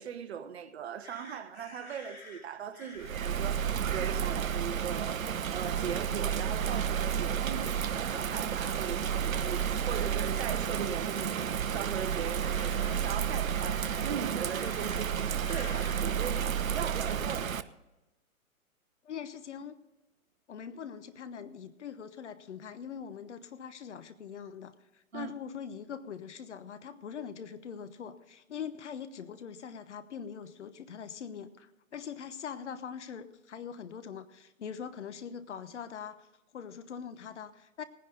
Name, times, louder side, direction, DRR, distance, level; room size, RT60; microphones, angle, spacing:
voice 1, 0.0-17.6 25.1-25.3, right 8 dB, 45° right, 1.2 m, -39 dB
sound 1, 1.0-3.1 6.0-6.3 8.0-8.5 9.5-9.8 10.6-10.9 11.6-13.0 13.5-14.2 14.5-15.0 15.4-16.0 16.6-16.9, left 2 dB, 80° left, 3.8 m, -51 dB
Bird vocalization bird call bird song / Rain, 3.0-17.6, right 8 dB, 70° right, 0.8 m, -31 dB
voice 2, 19.0-19.8 20.5-36.3 36.5-37.8, left 7 dB, 55° left, 1.1 m, -42 dB
18.5 x 10.5 x 3.9 m
figure-of-eight pair, 140°, 42 cm